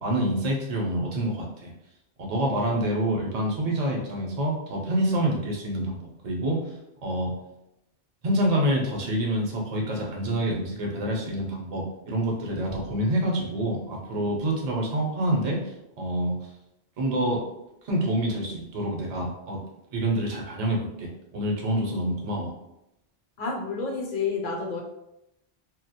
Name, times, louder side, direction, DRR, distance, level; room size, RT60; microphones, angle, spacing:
voice 1, 0.0-1.7 2.2-6.6 7.0-7.3 8.2-15.6 16.0-16.4 17.0-17.4 17.8-19.6 19.9-22.5, right 1 dB, 50° right, 0 dB, 0.6 m, -27 dB
voice 2, 23.4-24.8, left 4 dB, 60° left, 0 dB, 0.7 m, -29 dB
2.3 x 2.1 x 2.7 m, 0.88 s
omnidirectional pair, 1.1 m